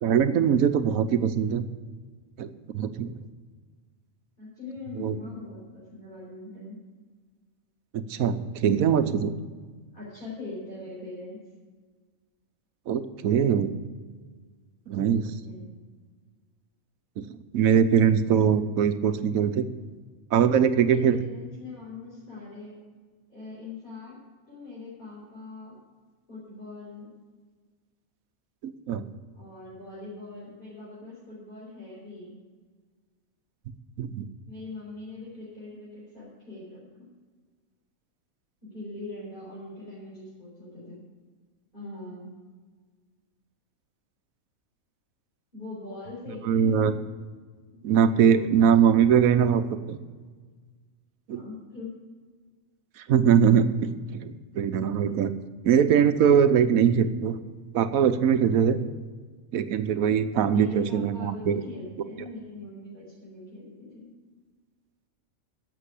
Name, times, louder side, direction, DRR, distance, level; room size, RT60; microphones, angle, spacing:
voice 1, 0.0-1.6 2.4-2.5 2.7-3.1 5.0-5.1 7.9-9.3 12.9-13.7 14.9-15.2 17.2-17.3 17.5-19.7 20.3-21.2 28.6-29.0 34.0-34.2 46.5-46.9 47.8-49.6 49.9-50.0 51.3-51.4 53.1-55.3 55.6-57.4 57.7-58.8 59.5-61.6, right 8 dB, 80° right, 11 dB, 1.2 m, -22 dB
voice 2, 0.5-0.9 4.4-6.8 9.9-11.4 15.4-15.7 20.8-22.8 23.3-24.2 24.5-25.8 26.3-27.1 29.3-32.4 34.5-37.1 38.6-41.0 41.7-42.3 45.5-47.1 48.0-49.0 51.3-51.9 60.4-64.1, left 3 dB, 35° left, -8 dB, 4.7 m, -42 dB
11.5 x 7.5 x 8.2 m, 1.5 s
omnidirectional pair, 1.4 m